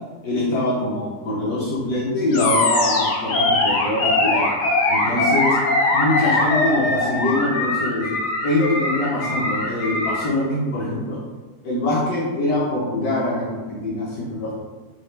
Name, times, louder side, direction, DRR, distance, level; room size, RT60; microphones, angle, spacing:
voice 1, 0.2-4.5 4.9-5.6 5.9-8.0 8.4-11.2 11.6-14.5, left 1 dB, 70° left, -6 dB, 1.3 m, -23 dB
Animal, 2.3-10.3, left 2 dB, 90° left, 1.3 m, -21 dB
4.4 x 2.3 x 3.1 m, 1.3 s
omnidirectional pair, 1.7 m